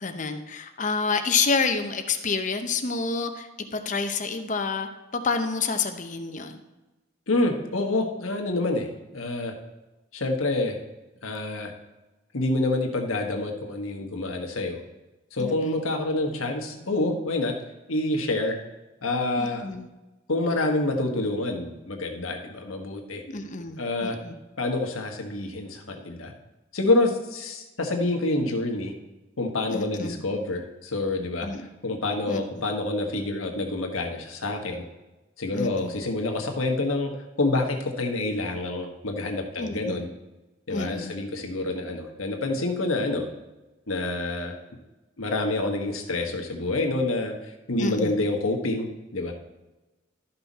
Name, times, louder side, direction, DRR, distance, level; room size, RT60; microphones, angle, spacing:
voice 1, 0.0-3.5 3.7-4.9 5.1-6.6 15.4-15.8 19.4-19.9 23.3-24.4 29.7-30.2 31.4-31.7 32.3-32.4 35.5-36.0 39.6-40.0 40.7-41.1 47.7-48.1, left 4 dB, 40° left, 6 dB, 0.8 m, -28 dB
voice 2, 7.3-9.5 10.1-10.8 11.2-11.7 12.3-14.8 15.3-17.5 17.9-18.6 19.0-19.7 20.3-23.2 23.8-24.2 24.6-26.3 26.7-28.9 29.4-34.8 35.4-37.1 37.4-40.1 40.7-43.3 43.9-44.6 45.2-47.3 47.7-49.3, left 2 dB, 85° left, 2 dB, 1.4 m, -27 dB
12.5 x 5.8 x 4.1 m, 1.1 s
head